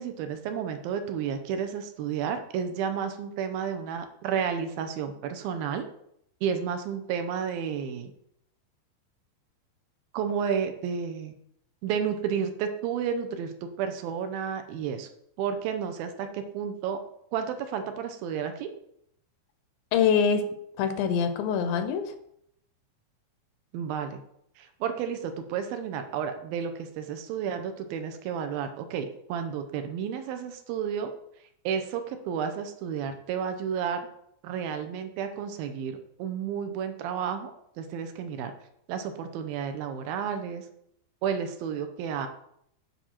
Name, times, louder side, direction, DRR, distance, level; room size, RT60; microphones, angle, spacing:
voice 1, 0.0-5.9 6.4-8.1 10.1-11.3 11.8-15.1 15.4-17.0 17.3-18.7 23.7-24.2 24.6-31.1 31.6-34.0 34.4-38.5 38.9-40.7 41.2-42.3, right 7 dB, 80° right, 7 dB, 2.5 m, -31 dB
voice 2, 19.9-22.1, left 6 dB, 80° left, 9 dB, 2.3 m, -25 dB
10.0 x 5.2 x 4.4 m, 0.73 s
omnidirectional pair, 4.3 m